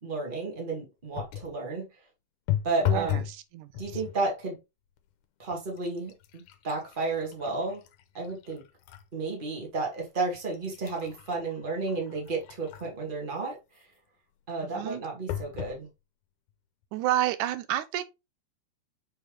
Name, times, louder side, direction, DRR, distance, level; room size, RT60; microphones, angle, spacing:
voice 1, 0.0-1.9 2.6-3.2 3.8-4.6 5.4-7.8 8.1-8.6 9.1-13.6 14.5-15.9, right 3 dB, 20° right, 1.9 m, -32 dB
sound 1, 1.1-1.6 2.5-3.4 3.7-4.2 5.0-5.1 5.5-9.1 9.6-9.7 10.3-13.1 15.3-15.8 16.5-16.6 16.8-16.9, left 12 dB, 75° left, 2.0 m, -35 dB
voice 2, 2.8-4.0 14.6-15.0 16.9-18.0, right 13 dB, 85° right, 2.1 m, -30 dB
7.2 x 4.6 x 3.3 m
omnidirectional pair, 3.6 m